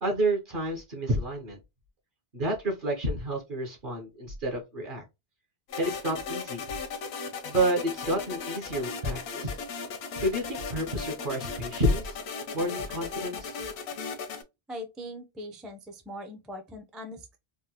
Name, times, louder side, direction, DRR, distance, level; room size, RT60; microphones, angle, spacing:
voice 1, 0.0-1.6 2.3-5.0 5.8-6.7 7.4-9.6 10.2-12.2 12.5-13.6, right 1 dB, 55° right, 1.0 m, -29 dB
sound 1, 5.7-14.4, left 5 dB, 80° left, 0.8 m, -37 dB
voice 2, 14.7-17.4, equal, ahead, 0.3 m, -41 dB
3.6 x 2.2 x 2.8 m
omnidirectional pair, 1.1 m